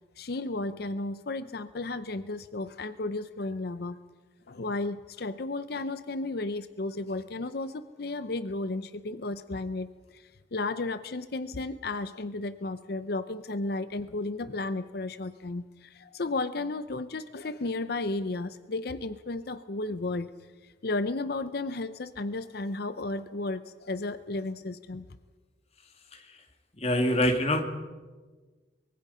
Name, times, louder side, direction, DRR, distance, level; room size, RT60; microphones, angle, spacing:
voice 1, 0.2-4.0 4.5-20.3 20.8-25.1, left 2 dB, 55° left, 12 dB, 0.7 m, -33 dB
voice 2, 26.8-27.6, left 1 dB, 35° left, 4 dB, 2.3 m, -24 dB
24.5 x 22.5 x 5.6 m, 1.4 s
head